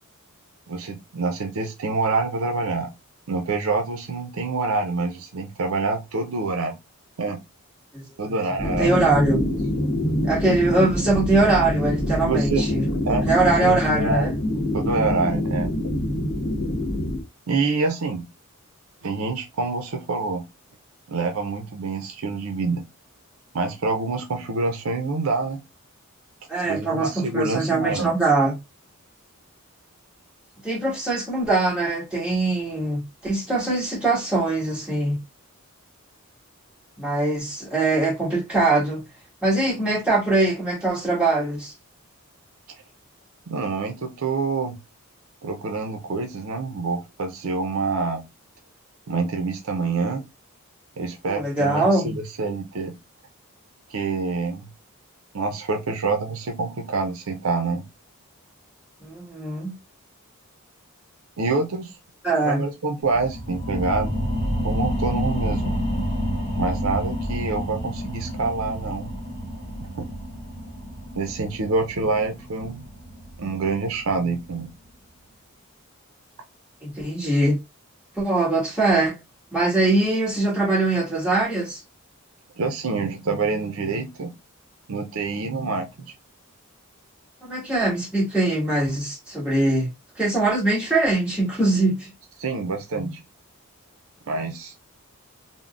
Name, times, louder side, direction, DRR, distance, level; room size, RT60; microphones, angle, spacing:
voice 1, 0.7-2.9 3.3-6.8 7.2-7.4 8.2-8.9 9.5-9.6 12.2-12.6 13.0-14.3 14.7-15.7 17.5-18.3 19.0-20.4 21.1-22.8 23.5-25.6 26.7-28.1 43.5-44.8 45.4-48.2 49.1-50.2 51.0-52.9 53.9-54.7 55.3-57.8 61.4-61.9 62.4-64.2 64.6-65.7 66.6-69.1 70.0-70.1 71.1-72.9 73.4-74.7 82.6-84.3 84.9-85.9 92.4-93.2 94.3-94.7, right 3 dB, 70° right, 0.5 m, -26 dB
sound 1, 8.6-17.2, left 1 dB, 75° left, 0.9 m, -25 dB
voice 2, 8.6-9.4 10.2-12.9 13.3-14.3 26.5-28.5 30.6-35.2 37.0-39.0 39.4-41.7 51.2-52.2 59.0-59.7 62.2-62.6 76.8-77.6 78.1-79.1 79.5-81.8 87.4-89.9 90.2-92.1, right 2 dB, 5° right, 1.4 m, -22 dB
sound 2, 63.0-74.2 74.6-74.7, equal, 35° left, 1.0 m, -29 dB
3.6 x 2.0 x 2.3 m
head